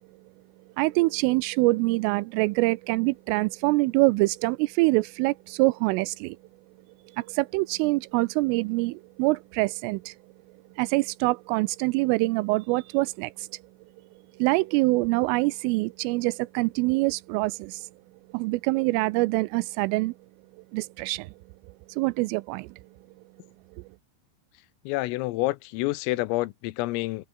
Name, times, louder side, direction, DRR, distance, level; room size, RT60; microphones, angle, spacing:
voice 1, 0.8-6.4 7.2-10.1 10.8-13.5 14.4-17.9 18.3-20.1 20.7-21.3 21.9-22.7, right 23 dB, 85° right, 3.0 m, -25 dB
voice 2, 24.9-27.3, left 19 dB, 85° left, 3.5 m, -28 dB
omnidirectional pair, 5.9 m